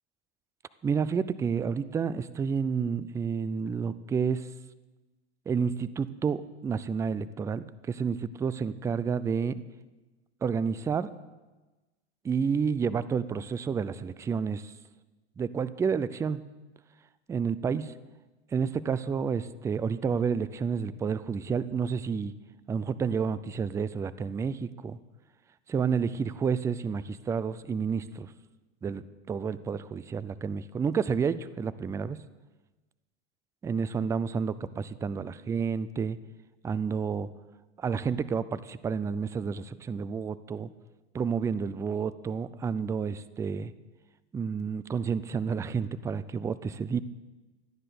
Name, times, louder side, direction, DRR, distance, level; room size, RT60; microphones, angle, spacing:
voice 1, 0.8-4.5 5.5-9.6 10.4-11.1 12.2-14.7 15.4-16.4 17.3-17.9 18.5-22.3 22.7-25.0 25.7-28.3 28.8-32.2 33.6-36.2 36.6-37.3 37.8-40.7 41.1-43.7 44.3-47.0, right 6 dB, 10° right, 16 dB, 0.3 m, -30 dB
13.5 x 9.9 x 6.8 m, 1.2 s
hypercardioid pair, 110°, 33 cm